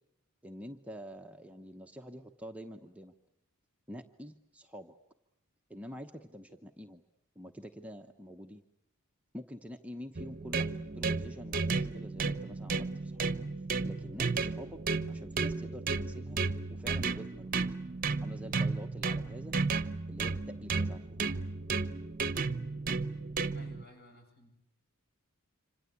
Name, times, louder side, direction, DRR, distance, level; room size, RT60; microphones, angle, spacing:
voice 1, 0.4-3.1 3.9-4.9 5.7-7.0 7.4-8.6 9.3-10.7 11.0-13.3 13.8-14.8 15.1-16.4 16.7-17.7 18.2-19.6 20.1-21.0, equal, 5° right, 3 dB, 1.0 m, -46 dB
sound 1, 10.2-23.8, right 4 dB, 40° right, 1.0 m, -33 dB
voice 2, 23.3-24.5, left 1 dB, 45° left, 4 dB, 7.7 m, -57 dB
27.0 x 26.5 x 8.5 m, 0.85 s
head